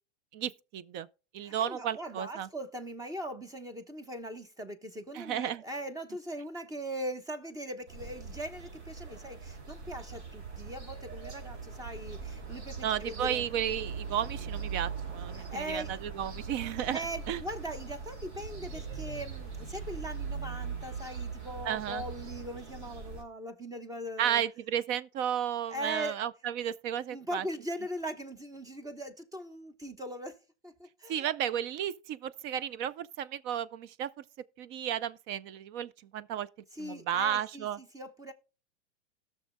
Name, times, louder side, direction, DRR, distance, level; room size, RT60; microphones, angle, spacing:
voice 1, 0.3-1.1 1.3-2.5 5.1-5.6 12.8-17.4 21.6-22.0 24.2-27.4 31.1-34.2 34.6-36.5 36.8-37.8, right 10 dB, 35° right, 0.5 m, -33 dB
voice 2, 1.4-13.5 15.3-15.9 16.9-24.4 25.7-26.2 27.1-30.4 30.6-31.3 36.7-38.3, equal, 10° right, 1.0 m, -40 dB
sound 1, 7.9-23.2, right 5 dB, 70° right, 3.5 m, -41 dB
17.5 x 6.4 x 2.2 m
hypercardioid pair, 120°, 34 cm